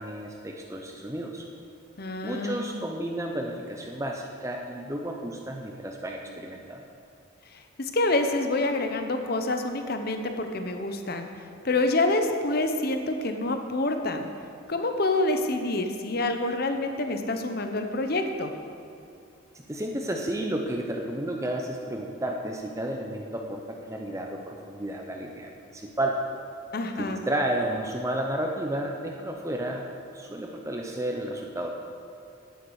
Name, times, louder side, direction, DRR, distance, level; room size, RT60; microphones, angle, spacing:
voice 1, 0.0-1.5 2.2-6.8 19.7-26.2 27.0-29.8 30.1-31.7, right 1 dB, 15° right, 1 dB, 0.6 m, -32 dB
voice 2, 2.0-2.6 7.5-11.3 11.6-14.3 14.7-18.5 26.7-27.2, left 2 dB, 45° left, 6 dB, 0.8 m, -27 dB
10.5 x 10.5 x 4.8 m, 2.7 s
head